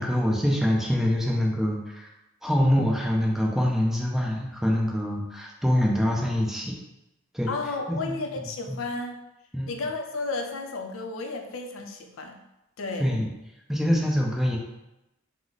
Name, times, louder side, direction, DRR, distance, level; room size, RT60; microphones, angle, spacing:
voice 1, 0.0-2.1 2.4-6.7 7.3-7.5 7.9-8.8 9.5-9.7 13.0-13.3 13.7-14.6, equal, ahead, -2 dB, 0.5 m, -25 dB
voice 2, 7.5-9.2 9.7-12.4 12.8-13.2, left 3 dB, 75° left, 4 dB, 0.5 m, -33 dB
4.7 x 2.0 x 3.9 m, 0.92 s
head